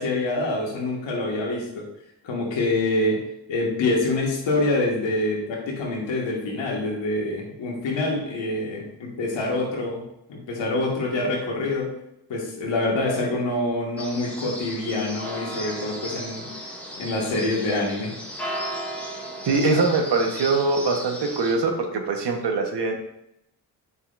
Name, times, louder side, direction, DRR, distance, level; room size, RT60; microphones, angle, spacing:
voice 1, 0.0-1.8 2.2-3.2 3.5-10.0 10.3-11.9 12.3-16.4 17.0-18.1, left 2 dB, 80° left, -2 dB, 2.1 m, -26 dB
sound 1, 14.0-21.5, equal, 5° left, 2.2 m, -35 dB
voice 2, 19.4-23.0, right 3 dB, 65° right, 3 dB, 1.4 m, -23 dB
8.0 x 5.7 x 2.6 m, 0.82 s
cardioid pair, 60°, 44 cm